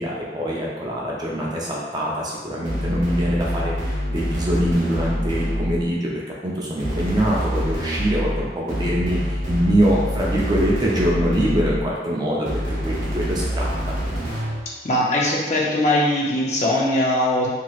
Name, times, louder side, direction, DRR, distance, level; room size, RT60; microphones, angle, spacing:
voice 1, 0.0-6.1 6.4-13.9, equal, 25° right, -4 dB, 0.5 m, -23 dB
sound 1, 2.6-5.9 6.8-11.9 12.5-14.7, equal, 50° right, 0.8 m, -26 dB
voice 2, 14.8-17.5, left 1 dB, 40° left, -4 dB, 0.6 m, -20 dB
3.1 x 2.9 x 2.4 m, 1.3 s
head